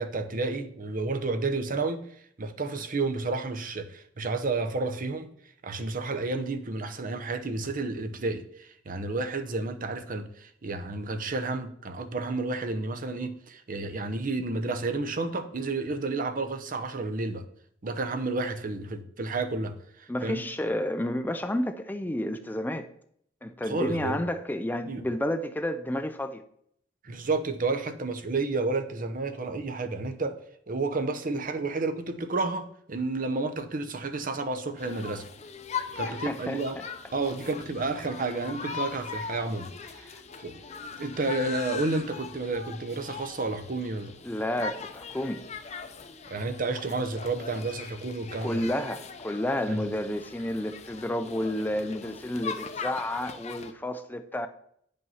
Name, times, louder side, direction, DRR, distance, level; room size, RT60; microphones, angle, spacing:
voice 1, 0.0-2.0 2.4-5.3 5.6-17.4 17.8-20.4 23.6-24.2 24.9-25.0 27.0-30.4 30.7-35.2 35.9-36.8 37.1-40.1 40.4-40.6 41.0-44.2 46.3-48.6 49.7-49.9, right 3 dB, 45° right, 0.8 m, -31 dB
voice 2, 20.1-22.9 23.4-26.4 36.0-36.9 40.0-40.1 44.2-45.5 48.4-54.5, left 1 dB, 10° left, 0.4 m, -31 dB
sound 1, 34.8-53.7, left 5 dB, 40° left, 0.7 m, -40 dB
9.2 x 5.4 x 5.7 m
head